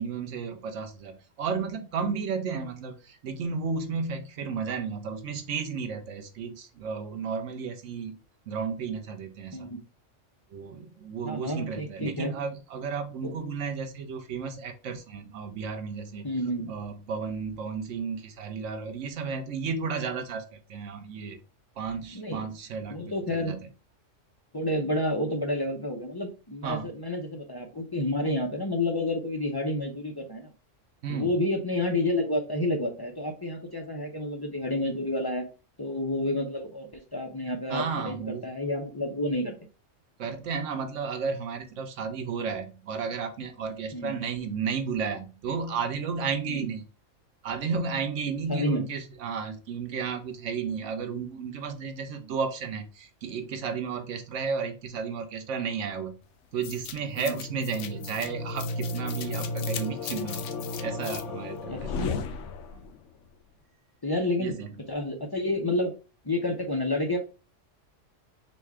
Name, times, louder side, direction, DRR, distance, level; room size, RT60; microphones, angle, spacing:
voice 1, 0.0-8.2 8.5-9.7 10.5-16.3 16.7-21.4 21.8-23.7 26.6-26.9 31.0-31.3 37.7-38.5 40.2-46.9 47.4-56.2 56.5-60.5 60.8-61.9 62.7-62.8 64.4-64.7, right 5 dB, 75° right, 7 dB, 1.1 m, -33 dB
voice 2, 11.2-12.3 13.2-13.3 16.2-16.7 22.1-22.4 22.9-23.5 24.5-30.5 31.1-35.4 35.8-39.5 43.9-44.1 46.5-46.7 48.5-48.8 57.2-57.4 61.7-62.2 64.0-64.6 64.9-65.9 66.2-67.2, left 1 dB, 30° left, 1 dB, 0.5 m, -29 dB
sound 1, 56.6-63.0, left 3 dB, 75° left, 0.9 m, -34 dB
4.1 x 2.3 x 4.6 m, 0.33 s
omnidirectional pair, 1.3 m